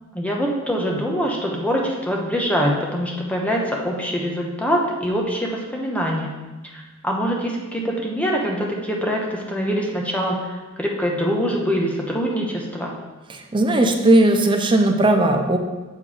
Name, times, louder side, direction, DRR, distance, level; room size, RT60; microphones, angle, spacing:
voice 1, 0.1-6.3 6.7-12.9, equal, 5° left, -1 dB, 1.0 m, -24 dB
voice 2, 13.3-15.6, right 1 dB, 25° right, 4 dB, 0.6 m, -17 dB
7.4 x 4.6 x 4.9 m, 1.2 s
head